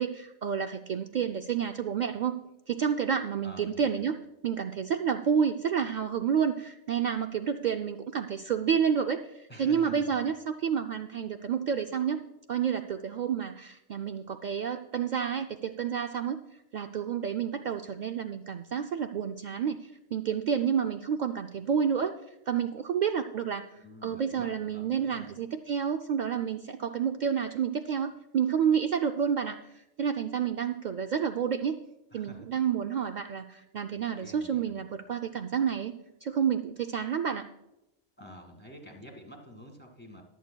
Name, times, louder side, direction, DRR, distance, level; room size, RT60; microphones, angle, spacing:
voice 1, 0.0-2.3 2.7-4.2 4.4-12.2 12.5-16.4 16.7-22.1 22.5-23.7 24.0-29.6 30.0-31.8 32.1-35.9 36.2-37.5, right 7 dB, 70° right, 5 dB, 0.4 m, -29 dB
voice 2, 3.4-4.0 9.5-10.0 23.8-25.3 32.1-32.5 34.2-34.8 38.2-40.2, equal, 10° left, 1 dB, 1.8 m, -48 dB
21.5 x 8.4 x 2.2 m, 0.91 s
omnidirectional pair, 1.3 m